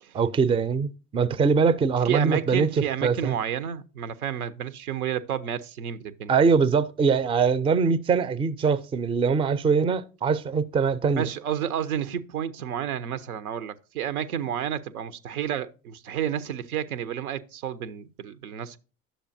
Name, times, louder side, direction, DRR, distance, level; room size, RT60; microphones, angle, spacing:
voice 1, 0.1-3.4 6.3-11.3, right 5 dB, 15° right, 0.4 m, -23 dB
voice 2, 2.0-6.3 11.2-18.8, right 9 dB, 90° right, 0.7 m, -30 dB
10.0 x 6.8 x 2.6 m
hypercardioid pair, 75°, 43 cm